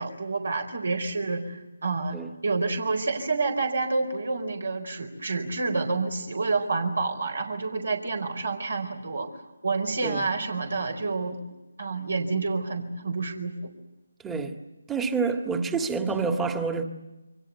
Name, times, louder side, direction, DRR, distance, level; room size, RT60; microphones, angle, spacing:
voice 1, 0.0-9.3 9.6-11.4 11.8-13.7, right 3 dB, 70° right, 5 dB, 4.4 m, -28 dB
voice 2, 14.2-14.6 14.9-16.8, right 4 dB, 5° right, 7 dB, 1.8 m, -28 dB
28.0 x 24.5 x 8.1 m, 1.1 s
figure-of-eight pair, 155°, 0 cm